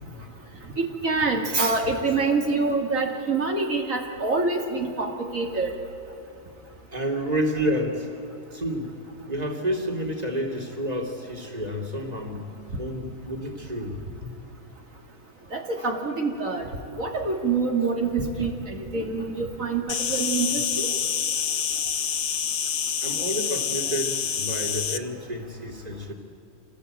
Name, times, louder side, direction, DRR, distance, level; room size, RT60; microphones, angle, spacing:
voice 1, 0.8-5.7 15.5-16.7 17.0-20.9, right 3 dB, 65° right, 1 dB, 3.0 m, -26 dB
voice 2, 6.9-8.1 8.5-8.9 9.2-13.9 14.2-14.3 23.0-26.1, equal, 25° right, 3 dB, 3.0 m, -30 dB
Insect, 19.9-25.0, left 8 dB, 60° left, 1.2 m, -27 dB
27.0 x 18.5 x 8.9 m, 2.7 s
omnidirectional pair, 1.5 m